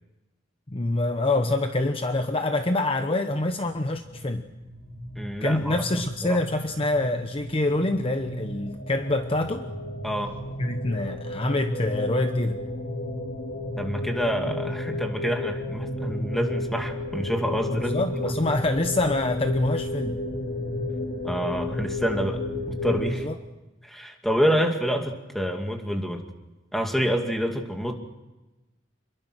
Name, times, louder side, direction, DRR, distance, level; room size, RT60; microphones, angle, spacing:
voice 1, 0.7-4.5 5.4-9.7 10.6-12.6 17.7-20.2 23.2-23.3, left 2 dB, 30° left, 7 dB, 1.0 m, -26 dB
sound 1, 4.1-23.1, left 1 dB, 55° left, 2.6 m, -33 dB
voice 2, 5.2-5.8 6.2-6.4 10.0-10.4 13.8-18.3 21.2-22.4 22.7-23.3 23.8-26.2 26.7-27.9, equal, ahead, 3 dB, 2.4 m, -27 dB
27.0 x 22.0 x 6.4 m, 1.1 s
head